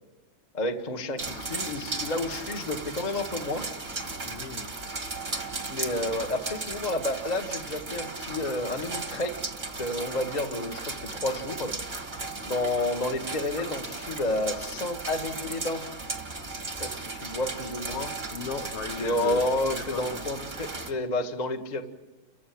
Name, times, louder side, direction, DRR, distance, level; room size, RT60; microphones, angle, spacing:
voice 1, 0.5-3.6 5.7-9.3 9.8-11.7 12.5-15.8 16.8-18.1 19.0-21.8, left 1 dB, 40° left, 5 dB, 0.5 m, -30 dB
sound 1, 1.2-20.9, right 3 dB, 30° right, 0.8 m, -36 dB
voice 2, 4.2-4.7 18.3-19.4 19.7-20.2, left 6 dB, 75° left, 6 dB, 1.3 m, -37 dB
30.0 x 16.0 x 8.7 m, 1.1 s
omnidirectional pair, 4.1 m